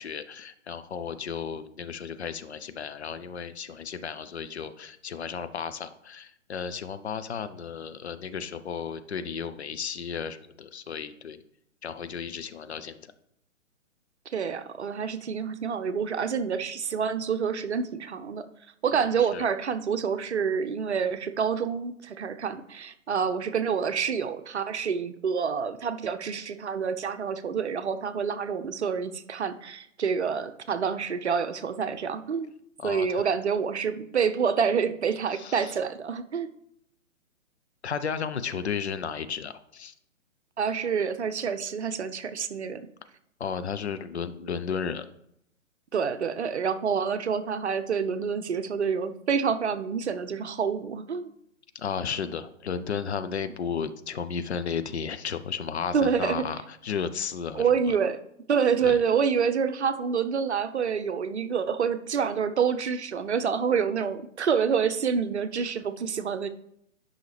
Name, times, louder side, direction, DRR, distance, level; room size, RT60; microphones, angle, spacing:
voice 1, 0.0-11.4 11.8-13.1 18.9-19.5 32.8-33.3 35.3-35.8 37.8-39.9 43.4-45.1 51.7-58.0 58.8-59.0, left 6 dB, 55° left, 11 dB, 0.7 m, -34 dB
voice 2, 14.3-18.4 18.8-32.5 32.8-36.5 40.6-42.8 45.9-51.3 55.9-56.4 57.5-58.2 58.5-66.5, right 6 dB, 55° right, 10 dB, 0.7 m, -27 dB
11.0 x 5.6 x 3.3 m, 0.75 s
figure-of-eight pair, 130°, 40 cm